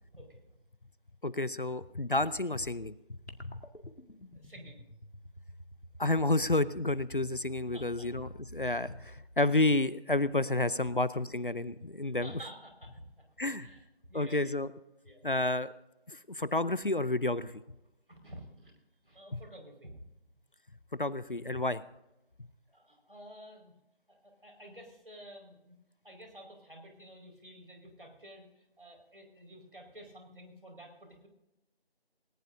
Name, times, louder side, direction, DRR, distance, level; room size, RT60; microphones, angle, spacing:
voice 1, 0.1-0.6 4.3-4.8 7.7-8.1 12.2-14.6 15.0-15.3 18.1-18.7 19.0-20.0 22.7-23.7 24.1-25.8 26.0-31.3, equal, 55° right, 3 dB, 5.1 m, -51 dB
voice 2, 1.2-2.9 3.4-3.5 6.0-12.3 13.4-13.7 14.1-14.7 15.2-15.7 16.1-17.5 19.3-19.4 21.0-21.8, left 2 dB, 55° left, 17 dB, 0.6 m, -30 dB
sound 1, 3.3-9.8, right 1 dB, 90° left, 2.1 m, -51 dB
19.5 x 19.5 x 2.7 m, 0.89 s
figure-of-eight pair, 175°, 32 cm